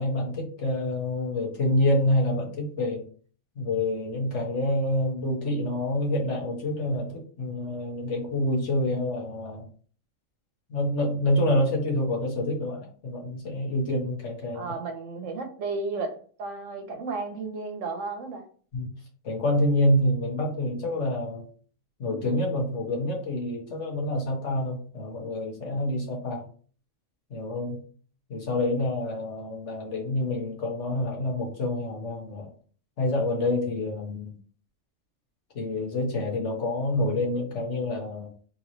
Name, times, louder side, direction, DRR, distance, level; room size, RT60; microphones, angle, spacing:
voice 1, 0.0-3.0 3.5-9.7 10.7-14.7 18.7-18.9 19.2-21.5 22.0-26.4 27.3-27.8 28.3-32.5 33.0-34.4 35.5-38.3, left 1 dB, 70° left, 1.6 m, -27 dB
voice 2, 14.5-18.4, right 3 dB, 85° right, 1.2 m, -33 dB
3.7 x 3.0 x 3.9 m
omnidirectional pair, 1.3 m